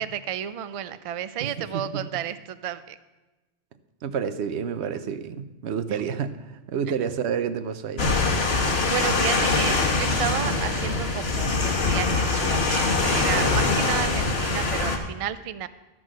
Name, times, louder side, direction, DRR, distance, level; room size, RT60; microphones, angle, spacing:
voice 1, 0.0-3.0 5.9-6.0 8.6-15.7, right 10 dB, 60° right, 13 dB, 0.3 m, -32 dB
voice 2, 1.4-2.0 4.0-8.2, right 7 dB, 85° right, 11 dB, 0.9 m, -29 dB
sound 1, 8.0-15.0, left 3 dB, 70° left, 1.4 m, -23 dB
12.0 x 6.1 x 6.2 m, 1.1 s
omnidirectional pair, 1.1 m